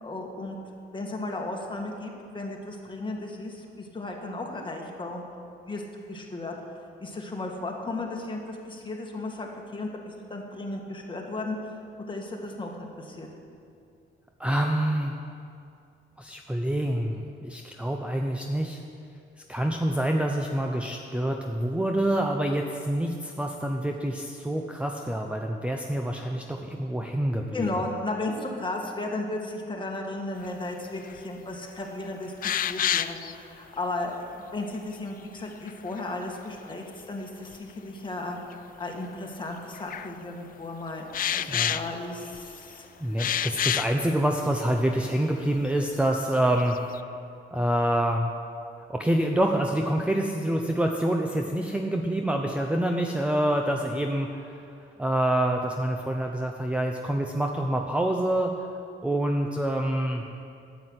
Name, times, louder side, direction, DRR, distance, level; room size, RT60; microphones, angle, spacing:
voice 1, 0.0-0.6 0.9-5.2 5.6-5.8 6.1-6.5 7.0-13.3 27.5-43.2, left 2 dB, 25° left, 1 dB, 1.8 m, -35 dB
voice 2, 14.4-15.2 16.2-18.8 19.5-27.7 41.5-41.8 43.0-46.8 47.5-48.3 48.9-54.6 55.0-58.5 59.0-60.2, right 1 dB, 5° right, 2 dB, 0.7 m, -26 dB
sound 1, 31.1-31.2 31.7-31.8 32.4-33.4 35.5-36.3 37.5-37.6 38.5-38.6 39.7-40.1 41.1-42.6 43.2-44.0 44.6-44.7 45.1-45.2 45.6-46.0 46.4-47.0, left 10 dB, 45° left, 0.4 m, -28 dB
9.6 x 7.9 x 7.9 m, 2.5 s
cardioid pair, 90°, 20 cm